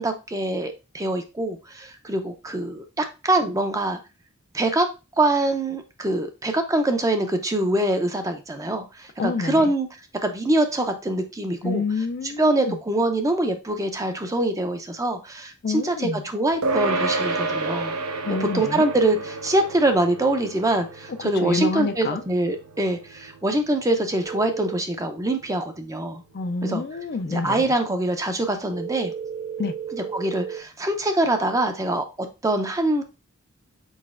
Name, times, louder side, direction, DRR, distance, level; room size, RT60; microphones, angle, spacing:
voice 1, 0.0-4.0 4.5-4.9 5.2-11.8 12.4-17.9 18.5-26.2 26.6-26.8 27.3-29.1 29.9-33.0, right 1 dB, 15° right, 0.6 m, -24 dB
voice 2, 9.2-9.7 11.6-12.8 15.6-16.2 18.2-18.9 21.2-22.2 26.3-27.7 29.6-29.7, left 4 dB, 45° left, 0.4 m, -28 dB
sound 1, 16.6-26.3, right 3 dB, 80° right, 0.8 m, -31 dB
sound 2, 24.2-24.8 28.7-30.6, right 7 dB, 30° right, 1.0 m, -33 dB
5.4 x 4.0 x 2.5 m
head